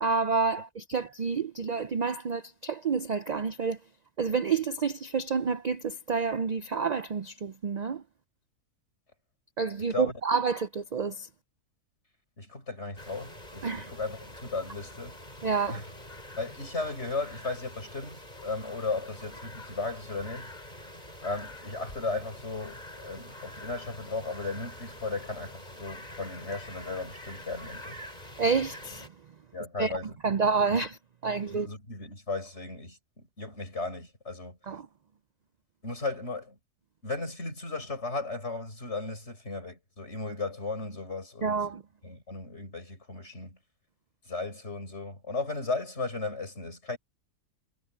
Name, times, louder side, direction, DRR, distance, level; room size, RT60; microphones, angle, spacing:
voice 1, 0.0-3.8 4.2-8.0 9.6-11.3 13.6-13.9 15.4-15.8 28.4-29.1 29.8-29.9 30.2-31.7 34.7-34.9 41.4-41.8, right 5 dB, 70° right, 0.4 m, -29 dB
voice 2, 12.4-15.1 15.7-15.9 16.4-20.5 21.2-28.0 29.5-30.2 31.5-34.6 35.8-36.6 37.0-41.6 42.0-43.6 44.3-47.0, left 3 dB, 50° left, 5.7 m, -36 dB
sound 1, 13.0-29.1, left 1 dB, 30° left, 7.9 m, -46 dB
omnidirectional pair, 1.5 m